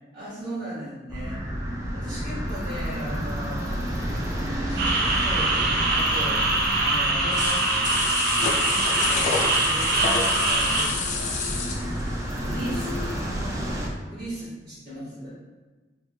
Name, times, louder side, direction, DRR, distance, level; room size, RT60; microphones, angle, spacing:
voice 1, 0.1-1.4 1.9-4.0 4.7-7.6 8.3-11.4 11.7-13.0 14.0-15.3, equal, 35° right, -11 dB, 0.9 m, -37 dB
sound 1, 1.1-13.9, equal, 20° right, 0.4 m, -31 dB
sound 2, 4.8-10.8, right 2 dB, 60° right, 0.6 m, -23 dB
sound 3, 7.3-13.3 13.6-13.7, left 4 dB, 45° left, 0.4 m, -29 dB
3.2 x 2.1 x 3.1 m, 1.2 s
head